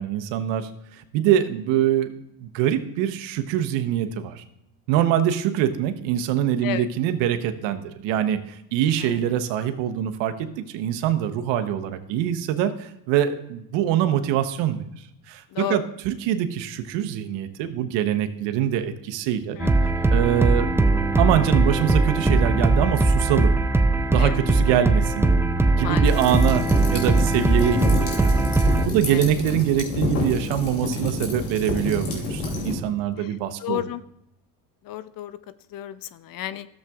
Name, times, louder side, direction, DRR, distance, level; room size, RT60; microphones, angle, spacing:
voice 1, 0.0-2.1 2.4-4.4 4.9-14.8 15.3-19.6 20.1-20.7 21.2-23.5 24.1-25.3 25.6-33.8, right 10 dB, 75° right, 9 dB, 0.9 m, -24 dB
sound 1, 19.6-28.9, right 2 dB, 5° right, 0.4 m, -20 dB
voice 2, 25.8-26.1 29.1-29.2 33.2-33.3 33.6-34.0 34.8-35.4 35.7-36.7, left 13 dB, 50° left, 14 dB, 0.6 m, -32 dB
sound 2, 26.0-32.7, left 2 dB, 75° left, 2.8 m, -28 dB
13.0 x 7.4 x 2.4 m, 0.80 s
supercardioid pair, 95°, 45 cm